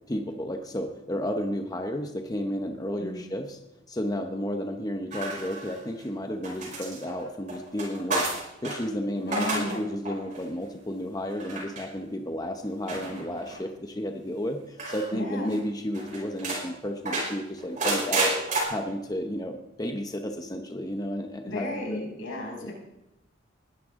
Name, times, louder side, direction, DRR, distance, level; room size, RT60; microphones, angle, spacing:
voice 1, 0.1-3.6 3.9-18.4 18.7-22.0 22.6-22.7, equal, 20° left, 5 dB, 0.8 m, -32 dB
sound 1, 5.1-6.0 6.4-8.8 9.2-9.8 10.0-10.4 11.4-11.8 12.9-13.6 14.8-15.1 15.5-15.6 15.9-16.6 17.0-18.6, right 2 dB, 40° right, 5.3 m, -30 dB
voice 2, 9.2-9.7 15.1-15.6 21.4-22.7, left 1 dB, 80° left, -2 dB, 6.0 m, -33 dB
20.5 x 12.5 x 3.7 m, 0.93 s
head